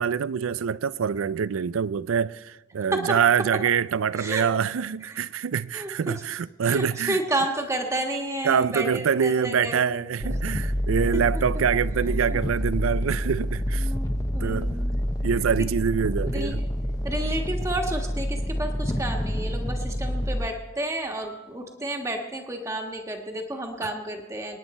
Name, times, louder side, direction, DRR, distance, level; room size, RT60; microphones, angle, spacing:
voice 1, 0.0-7.2 8.4-13.9 14.4-14.7 15.2-16.6, right 7 dB, 85° right, 0.4 m, -25 dB
voice 2, 4.1-4.4 5.0-5.2 5.7-6.2 6.6-10.0 11.1-11.4 12.3-12.4 13.7-14.9 16.2-16.6 17.0-24.6, right 1 dB, 15° right, 1.5 m, -31 dB
sound 1, 10.2-20.5, equal, 15° left, 0.8 m, -28 dB
26.0 x 10.0 x 4.3 m
head